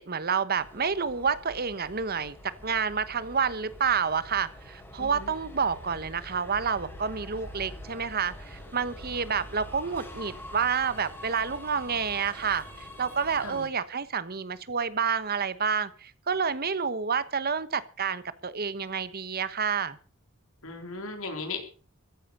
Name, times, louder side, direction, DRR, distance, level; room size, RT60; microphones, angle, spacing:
voice 1, 0.0-20.0, right 6 dB, 45° right, 15 dB, 1.1 m, -29 dB
Subway metro underground, 0.6-13.7, equal, 10° left, 4.8 m, -45 dB
voice 2, 5.0-5.3 13.4-13.6 20.6-21.6, left 3 dB, 70° left, 5 dB, 4.1 m, -37 dB
15.0 x 10.0 x 6.7 m, 0.41 s
head